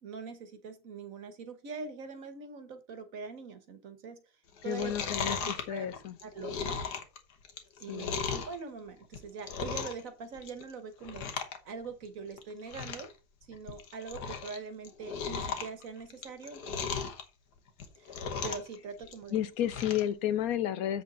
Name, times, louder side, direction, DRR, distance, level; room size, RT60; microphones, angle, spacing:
voice 1, 0.0-4.2 4.6-4.9 5.2-5.9 6.2-6.8 7.8-13.1 13.5-17.0 18.0-18.2 18.4-19.4, right 5 dB, 60° right, 1.5 m, -43 dB
Chewing mastication, 4.6-8.6 9.0-10.1 10.3-10.7 11.0-11.6 11.8-11.9 12.4-12.5 12.7-13.1 13.5-14.6 14.8-17.2 17.7-18.7 19.0-20.1 20.5-20.6, left 6 dB, 90° left, 1.7 m, -36 dB
voice 2, 4.6-6.2 7.9-8.3 19.3-21.0, left 11 dB, 70° left, 1.0 m, -32 dB
8.0 x 6.1 x 3.8 m
omnidirectional pair, 1.7 m